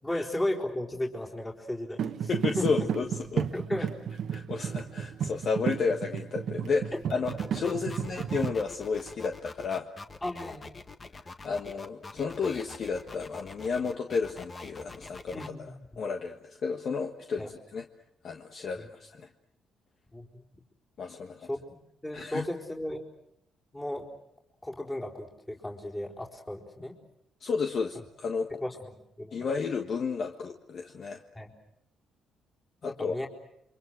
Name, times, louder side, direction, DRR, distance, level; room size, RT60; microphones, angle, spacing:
voice 1, 0.0-2.3 2.6-2.7 3.5-3.9 4.6-4.8 6.9-7.0 10.2-10.7 15.3-16.0 17.4-17.5 18.8-18.9 20.1-20.4 21.5-21.6 22.0-23.0 23.7-24.1 24.6-27.0 27.9-28.0 28.6-28.9 29.2-29.5 31.3-31.5 32.8-33.3, left 1 dB, 15° left, -1 dB, 4.0 m, -35 dB
sound 1, 2.0-8.5, right 8 dB, 65° right, 1.2 m, -33 dB
voice 2, 2.3-3.5 4.3-9.9 11.4-15.4 16.0-17.8 18.2-19.3 21.0-21.5 22.1-22.5 27.4-28.5 29.3-31.2 32.8-33.1, left 5 dB, 55° left, 4 dB, 1.5 m, -32 dB
sound 2, 7.2-15.5, left 3 dB, 30° left, 1.7 m, -45 dB
29.5 x 24.5 x 6.5 m, 0.78 s
cardioid pair, 90°, 0 cm